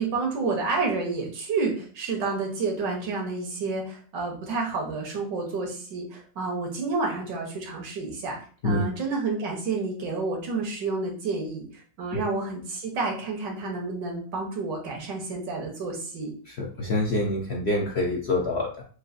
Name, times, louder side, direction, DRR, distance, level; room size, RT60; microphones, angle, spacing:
voice 1, 0.0-8.4 8.6-16.3, right 3 dB, 85° right, 0 dB, 1.8 m, -30 dB
voice 2, 16.5-18.8, left 2 dB, 65° left, -1 dB, 0.6 m, -26 dB
6.2 x 2.5 x 2.6 m, 0.43 s
omnidirectional pair, 1.9 m